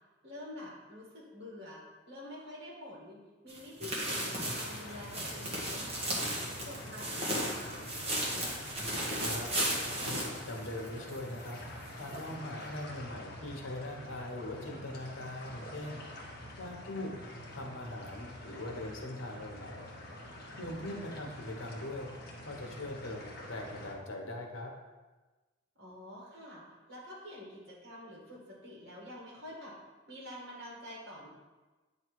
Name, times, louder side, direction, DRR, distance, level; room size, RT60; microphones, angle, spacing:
voice 1, 0.2-5.8 6.1-6.3 6.6-7.8 16.4-16.9 20.7-21.2 25.8-26.6 26.9-29.7 30.1-31.3, left 1 dB, 55° right, -4 dB, 2.1 m, -47 dB
sound 1, 3.5-11.2 11.5-11.6 12.1-12.2, right 1 dB, 30° right, 1.4 m, -35 dB
sound 2, 4.0-23.9, left 1 dB, 50° left, 1.2 m, -47 dB
voice 2, 9.2-9.5 10.0-11.6 12.0-16.0 16.6-17.1 17.5-19.9 20.6-22.1 22.4-24.7, left 1 dB, 85° left, 1 dB, 1.2 m, -41 dB
9.1 x 3.2 x 4.7 m, 1.2 s
head